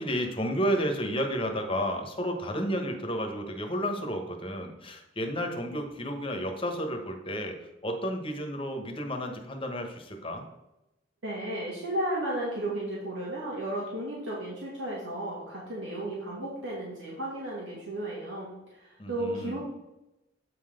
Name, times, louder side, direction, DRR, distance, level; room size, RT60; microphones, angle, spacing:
voice 1, 0.0-7.6 7.8-10.5 19.0-19.6, equal, 30° left, 4 dB, 1.1 m, -31 dB
voice 2, 11.2-19.6, right 1 dB, 90° right, -5 dB, 2.0 m, -34 dB
8.4 x 3.9 x 5.0 m, 0.91 s
head